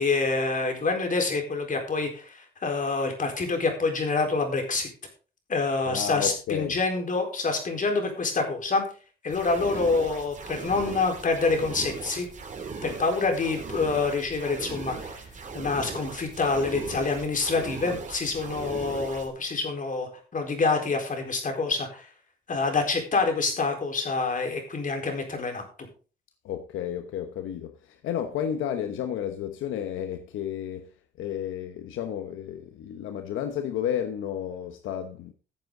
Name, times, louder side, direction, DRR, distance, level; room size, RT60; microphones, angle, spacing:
voice 1, 0.0-4.9 5.5-8.8 9.2-12.3 12.8-15.2 15.5-22.1 22.5-25.9, left 3 dB, 40° left, 4.3 m, -27 dB
voice 2, 5.9-6.8 26.4-30.9 31.2-35.3, left 9 dB, 85° left, 1.1 m, -32 dB
sound 1, 9.3-19.3, right 4 dB, 40° right, 2.9 m, -38 dB
14.5 x 8.0 x 3.9 m
cardioid pair, 90°, 20 cm